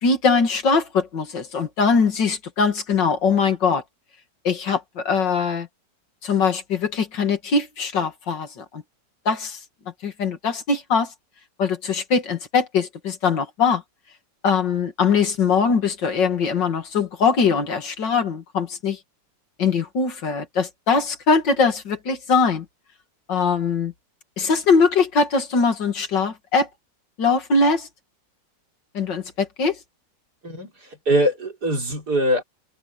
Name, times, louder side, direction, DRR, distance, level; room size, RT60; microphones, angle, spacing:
voice 1, 0.0-3.8 4.4-5.7 6.2-8.8 9.3-9.6 10.0-11.1 11.6-13.8 14.4-19.0 19.6-22.6 23.3-23.9 24.4-26.7 27.2-27.9 28.9-29.8, left 5 dB, 80° left, 2.8 m, -21 dB
voice 2, 31.1-32.4, equal, 60° right, 4.6 m, -22 dB
omnidirectional pair, 1.9 m